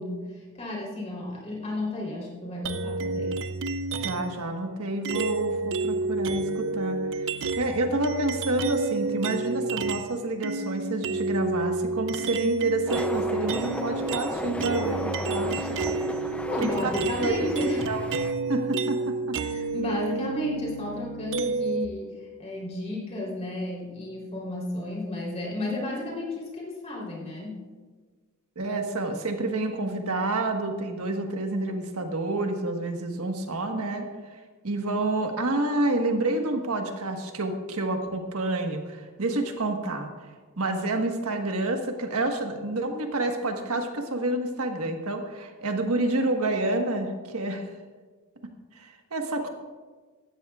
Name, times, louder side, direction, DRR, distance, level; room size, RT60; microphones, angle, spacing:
voice 1, 0.0-3.3 16.4-17.8 19.4-27.6, left 1 dB, 30° left, -4 dB, 3.4 m, -32 dB
sound 1, 2.6-4.4 5.0-10.1 10.4-21.9, right 3 dB, 60° right, 0.5 m, -30 dB
voice 2, 4.0-15.8 16.2-16.3 16.6-16.9 17.2-17.5 17.9-18.0 18.5-19.4 28.5-34.1 34.6-40.1 40.6-47.7 48.7-49.5, right 2 dB, 85° right, 4 dB, 1.4 m, -29 dB
sound 2, 12.9-18.3, left 1 dB, 5° left, 0.4 m, -35 dB
17.0 x 13.0 x 2.4 m, 1.4 s
head